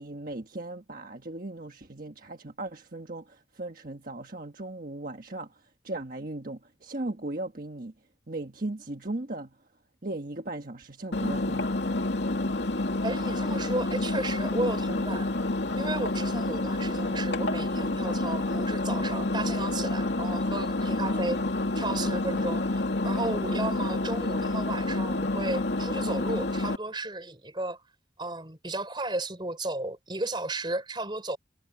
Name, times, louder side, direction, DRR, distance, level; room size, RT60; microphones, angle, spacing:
voice 1, 0.0-7.9 8.3-9.6 10.0-11.8, right 2 dB, 50° right, 1.4 m, -37 dB
Engine, 11.1-26.8, left 2 dB, 70° left, 2.4 m, -28 dB
voice 2, 13.0-15.3 15.8-21.4 21.8-27.8 28.2-31.4, right 2 dB, 25° right, 4.1 m, -34 dB
head